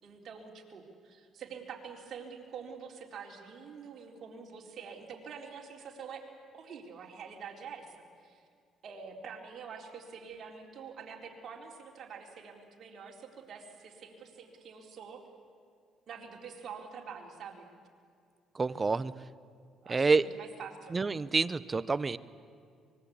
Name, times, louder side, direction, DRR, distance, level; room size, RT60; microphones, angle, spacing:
voice 1, 0.0-6.2 6.5-8.5 8.8-15.2 16.1-17.7 19.8-21.0, right 6 dB, 55° right, 1 dB, 4.1 m, -46 dB
voice 2, 18.6-19.1 19.9-20.3 20.9-22.2, right 4 dB, 25° right, 16 dB, 0.8 m, -27 dB
24.5 x 21.5 x 8.7 m, 2.3 s
cardioid pair, 90°, 0 cm